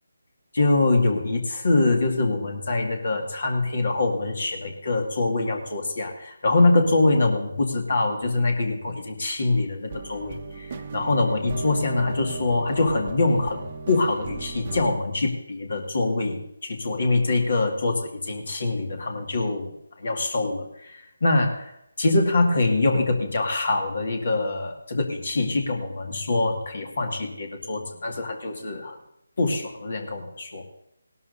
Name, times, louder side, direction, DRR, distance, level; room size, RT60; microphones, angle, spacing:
voice 1, 0.5-19.7 20.0-21.7 22.0-29.0 29.4-30.6, left 2 dB, 60° left, 3 dB, 2.1 m, -24 dB
sound 1, 9.9-14.9, right 4 dB, 40° right, 1.0 m, -36 dB
18.0 x 12.5 x 2.7 m, 0.79 s
figure-of-eight pair, 155°, 0 cm